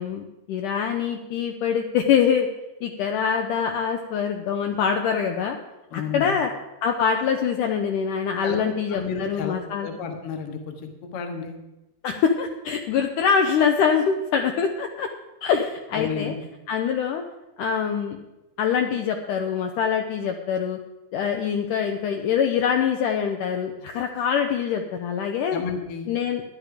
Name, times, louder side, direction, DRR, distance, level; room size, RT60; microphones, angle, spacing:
voice 1, 0.0-2.5 2.8-5.6 5.9-6.5 6.8-9.9 12.0-15.1 15.4-16.3 16.7-17.2 17.6-18.2 18.6-20.8 21.1-25.6 26.1-26.4, left 7 dB, 75° left, 3 dB, 2.1 m, -24 dB
voice 2, 5.9-6.3 8.4-8.6 8.9-9.6 9.8-11.6 15.9-16.4 25.5-26.1, left 6 dB, 55° left, 5 dB, 1.8 m, -31 dB
13.5 x 10.5 x 5.0 m, 0.97 s
omnidirectional pair, 4.2 m